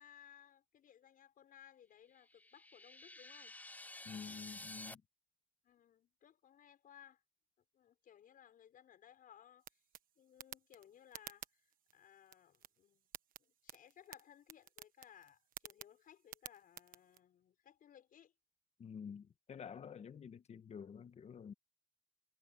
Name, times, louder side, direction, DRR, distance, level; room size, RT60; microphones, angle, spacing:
voice 1, 0.0-3.5 5.6-7.2 7.7-9.9 10.2-13.1 13.4-18.3, left 9 dB, 55° left, 6.5 m, -62 dB
sound 1, 2.2-4.9, left 2 dB, 10° left, 0.6 m, -51 dB
voice 2, 4.0-5.0 18.8-21.5, left 7 dB, 40° left, 1.5 m, -49 dB
sound 2, 9.6-17.2, right 10 dB, 55° right, 1.3 m, -55 dB
cardioid pair, 110°, 17 cm